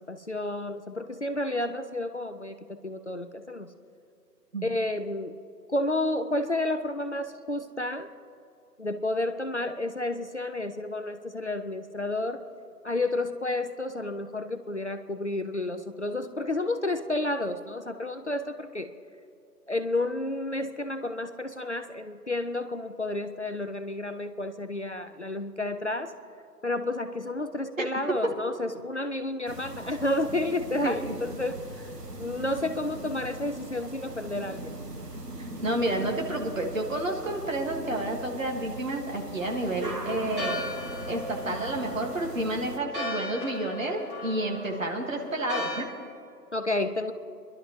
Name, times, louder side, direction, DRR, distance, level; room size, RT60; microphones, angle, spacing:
voice 1, 0.1-3.7 4.6-5.4 5.7-8.1 8.8-12.4 12.8-18.9 19.7-26.1 26.6-31.6 32.2-34.7 46.5-47.1, left 2 dB, 45° left, 8 dB, 0.5 m, -31 dB
sound 1, 29.5-42.8, right 1 dB, 75° right, 1.6 m, -40 dB
voice 2, 30.8-31.2 35.6-40.6 41.1-45.9, right 1 dB, 50° right, 1 dB, 2.0 m, -30 dB
Church bell, 39.4-45.8, left 1 dB, 30° right, 2.5 m, -37 dB
26.0 x 11.5 x 3.1 m, 2.5 s
figure-of-eight pair, 160°, 49 cm